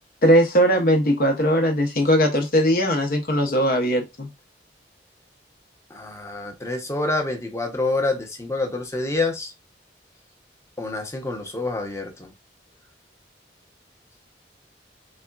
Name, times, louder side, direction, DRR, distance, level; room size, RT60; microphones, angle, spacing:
voice 1, 0.2-4.3, equal, 50° left, 0.7 m, -19 dB
voice 2, 5.9-9.5 10.8-12.3, left 2 dB, 15° left, 0.8 m, -27 dB
4.1 x 3.4 x 2.3 m
head